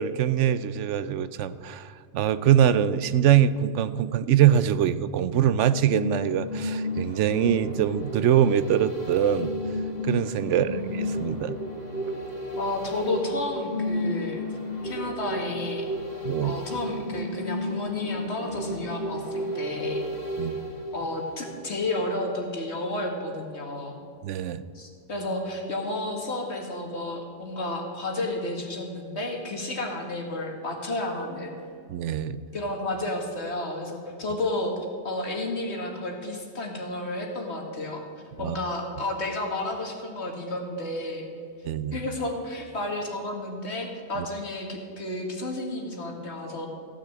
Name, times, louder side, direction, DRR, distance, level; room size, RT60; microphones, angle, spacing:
voice 1, 0.0-9.5 10.0-11.6 16.2-16.6 20.4-20.6 24.2-24.6 31.9-32.4 38.4-38.6 41.6-42.0 44.2-44.3, right 10 dB, 85° right, 15 dB, 0.9 m, -23 dB
sound 1, 5.6-21.8 22.2-22.3, left 1 dB, 35° left, 1.9 m, -32 dB
voice 2, 10.5-10.9 12.6-14.4 14.8-15.9 16.4-20.0 20.4-20.6 20.9-24.0 24.7-31.6 32.5-34.7 35.0-38.1 38.4-41.3 41.9-46.7, left 2 dB, 70° left, 2 dB, 2.1 m, -31 dB
15.5 x 6.4 x 8.6 m, 2.2 s
omnidirectional pair, 1.2 m